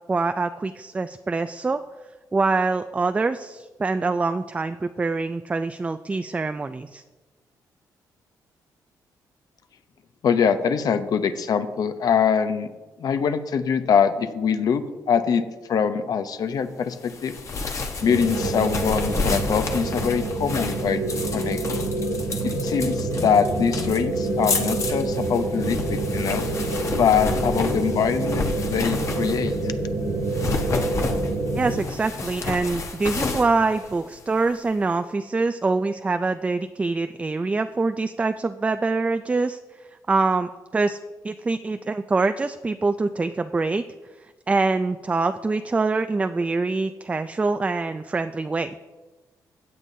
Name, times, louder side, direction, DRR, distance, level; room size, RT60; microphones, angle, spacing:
voice 1, 0.1-1.8 2.3-7.0 31.5-39.6 40.1-41.0 41.2-43.8 44.5-48.7, right 3 dB, 20° right, 9 dB, 0.3 m, -24 dB
voice 2, 10.2-12.7 13.0-17.3 18.0-21.6 22.4-26.4 27.0-29.5, left 7 dB, 65° left, 10 dB, 0.7 m, -23 dB
sound 1, 17.0-29.7 30.2-34.5, left 4 dB, 45° left, 1.1 m, -31 dB
sound 2, 18.0-31.8, right 2 dB, 85° right, 2.6 m, -27 dB
16.0 x 8.3 x 2.7 m, 1.3 s
cardioid pair, 100°, 7 cm